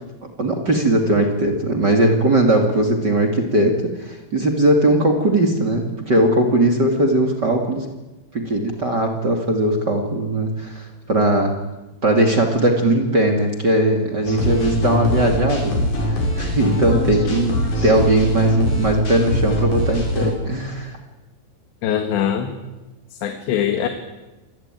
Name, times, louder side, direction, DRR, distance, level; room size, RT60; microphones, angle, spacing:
voice 1, 0.2-7.8 8.3-11.6 12.0-21.0, right 1 dB, 30° right, 4 dB, 2.6 m, -19 dB
sound 1, 14.3-20.3, left 1 dB, 45° left, 7.5 m, -23 dB
voice 2, 21.8-22.5 23.2-23.9, left 9 dB, 85° left, 6 dB, 4.0 m, -22 dB
27.0 x 21.0 x 9.3 m, 1.1 s
omnidirectional pair, 4.9 m